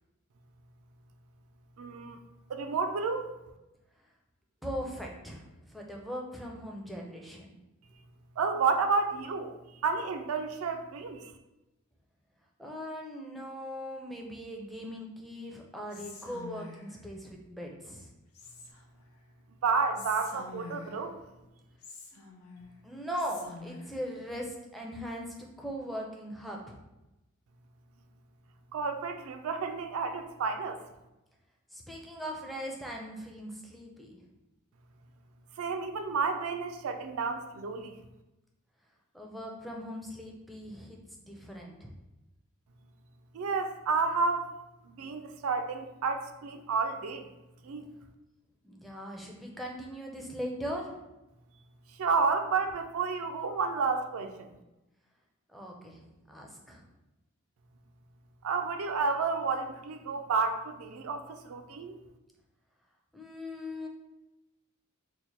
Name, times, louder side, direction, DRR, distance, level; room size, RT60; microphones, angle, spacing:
voice 1, 1.8-2.2 2.5-3.3 8.4-11.3 19.6-21.2 28.7-30.8 35.6-37.9 43.3-44.5 44.8-47.3 47.6-47.9 52.0-54.5 58.4-62.0, right 4 dB, 75° right, 7 dB, 0.4 m, -31 dB
voice 2, 4.6-7.5 12.6-18.1 22.8-26.8 31.7-34.2 39.1-41.9 48.6-51.0 55.5-56.8 63.1-63.9, equal, ahead, -1 dB, 0.4 m, -40 dB
Whispering, 15.9-17.0 18.3-19.0 19.9-21.1 21.8-22.7 23.2-24.0, left 3 dB, 85° left, 0.7 m, -46 dB
3.0 x 2.1 x 4.1 m, 0.97 s
head